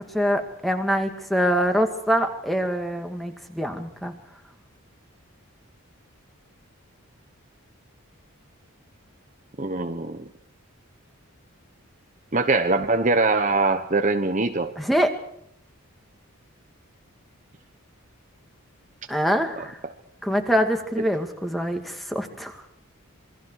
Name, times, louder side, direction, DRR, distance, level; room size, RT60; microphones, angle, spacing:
voice 1, 0.0-4.1 14.8-15.1 19.1-19.8 20.2-22.5, equal, ahead, 5 dB, 2.2 m, -24 dB
voice 2, 9.6-10.2 12.3-14.7, right 3 dB, 35° right, 6 dB, 1.1 m, -22 dB
27.5 x 24.0 x 4.8 m, 0.69 s
head